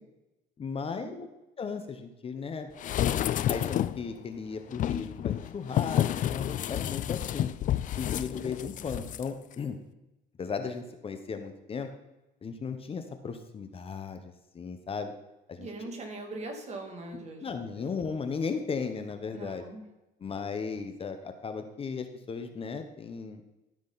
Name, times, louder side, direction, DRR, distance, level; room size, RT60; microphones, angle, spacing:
voice 1, 0.6-1.3 1.6-2.7 3.0-3.2 3.5-7.5 7.9-9.8 10.4-11.9 12.4-15.1 15.5-15.7 17.4-19.6 20.2-23.4, left 5 dB, 35° left, 7 dB, 0.9 m, -36 dB
sound 1, 2.8-4.1 4.7-9.2 9.5-9.6, left 11 dB, 50° left, 0.4 m, -30 dB
voice 2, 15.6-17.9 19.3-19.8, right 2 dB, 40° right, 2 dB, 2.4 m, -41 dB
13.0 x 6.4 x 4.0 m, 0.98 s
cardioid pair, 110°, 17 cm